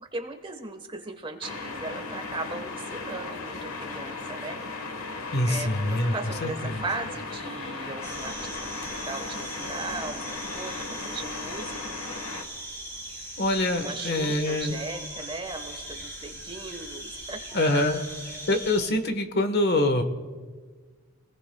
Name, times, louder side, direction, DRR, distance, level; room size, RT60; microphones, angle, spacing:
voice 1, 0.0-4.6 5.4-11.8 13.8-17.4, right 3 dB, 25° right, 6 dB, 1.2 m, -38 dB
sound 1, 1.4-12.4, left 3 dB, 70° left, 1.4 m, -36 dB
voice 2, 5.3-6.1 6.4-6.8 13.4-14.8 17.5-18.0 18.5-20.0, left 1 dB, 50° left, 7 dB, 1.3 m, -25 dB
sound 2, 8.0-18.9, right 1 dB, 15° left, 5.9 m, -39 dB
29.0 x 20.5 x 2.3 m, 1.5 s
head